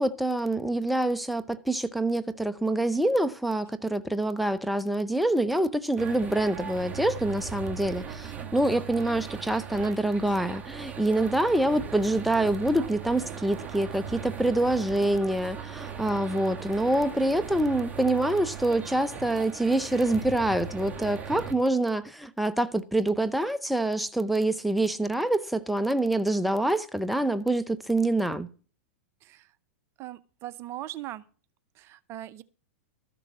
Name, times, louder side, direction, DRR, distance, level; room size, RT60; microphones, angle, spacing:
voice 1, 0.0-28.5, right 1 dB, ahead, 0.7 m, -26 dB
sound 1, 6.0-21.5, right 7 dB, 20° right, 1.8 m, -39 dB
voice 2, 29.2-29.5 30.0-31.2 31.7-32.4, right 14 dB, 35° right, 0.7 m, -40 dB
13.5 x 6.8 x 6.2 m
hypercardioid pair, 110°, 7 cm